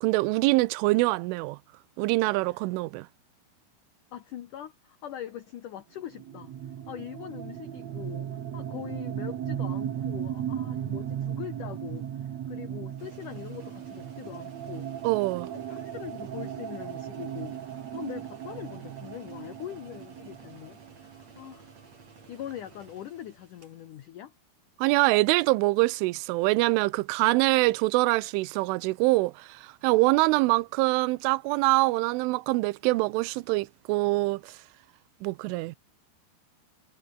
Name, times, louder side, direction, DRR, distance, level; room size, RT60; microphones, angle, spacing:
voice 1, 0.0-1.6 2.0-3.1 15.0-15.5 24.8-34.6 35.2-35.8, right 21 dB, 85° right, 3.2 m, -24 dB
voice 2, 4.1-6.5 6.9-8.3 8.5-14.9 15.5-21.7 22.3-24.3, left 11 dB, 90° left, 1.8 m, -42 dB
sound 1, 6.1-21.7, right 10 dB, 65° right, 1.7 m, -36 dB
sound 2, 13.0-24.1, right 4 dB, 35° right, 5.6 m, -54 dB
omnidirectional pair, 5.6 m